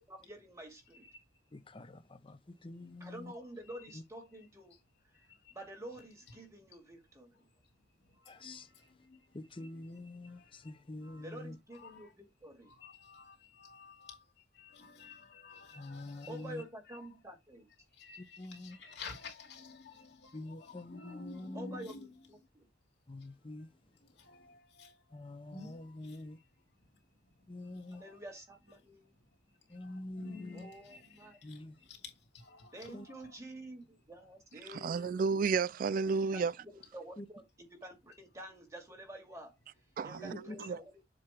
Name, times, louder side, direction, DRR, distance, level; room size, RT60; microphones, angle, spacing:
voice 1, 0.1-1.1 3.0-4.8 5.5-7.3 11.2-12.7 16.3-17.7 21.5-22.7 28.0-29.2 30.5-31.4 32.7-35.2 36.3-39.6 40.0-40.9, right 1 dB, 20° right, 2.4 m, -49 dB
voice 2, 1.5-2.4 2.6-3.3 8.3-8.6 9.3-10.4 10.6-11.6 15.8-16.6 18.4-18.8 20.3-21.9 23.1-23.7 25.1-26.3 27.5-28.0 29.7-30.7 31.4-31.7 32.9-33.0 37.2-37.3, left 2 dB, 30° left, 0.7 m, -45 dB
voice 3, 8.1-9.2 9.6-9.8 10.2-11.3 11.7-12.1 12.6-14.2 14.5-16.3 17.0-17.1 17.9-22.3 24.2-26.2 27.7-28.4 28.7-28.9 29.7-33.4 40.1-40.7, left 4 dB, 75° left, 2.4 m, -53 dB
voice 4, 34.7-36.5 40.0-40.3 40.7-40.8, right 5 dB, 50° right, 0.3 m, -31 dB
7.6 x 2.9 x 4.7 m
head